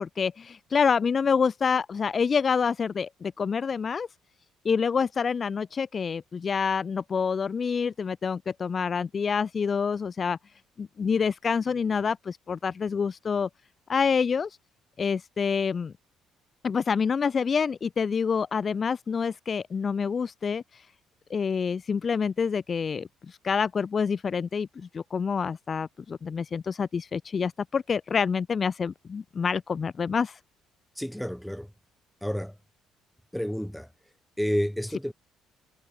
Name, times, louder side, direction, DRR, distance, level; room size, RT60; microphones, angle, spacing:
voice 1, 0.0-4.1 4.6-10.4 10.8-13.5 13.9-14.6 15.0-15.9 16.6-20.9 21.3-30.4, left 6 dB, 35° left, 0.4 m, -27 dB
voice 2, 31.0-31.7 32.2-32.5 33.3-33.9 34.4-35.1, equal, ahead, 1.6 m, -30 dB
cardioid pair, 120°, 0 cm